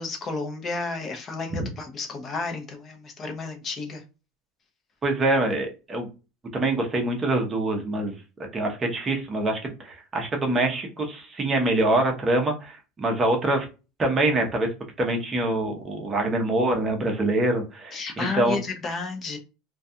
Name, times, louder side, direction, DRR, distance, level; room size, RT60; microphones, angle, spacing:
voice 1, 0.0-4.0 17.9-19.4, left 3 dB, 30° left, 0.6 m, -32 dB
voice 2, 5.0-6.1 6.5-8.2 8.5-13.7 14.0-14.7 15.0-18.6, right 2 dB, 20° right, 0.7 m, -25 dB
2.3 x 2.3 x 2.7 m
supercardioid pair, 145°, 0 cm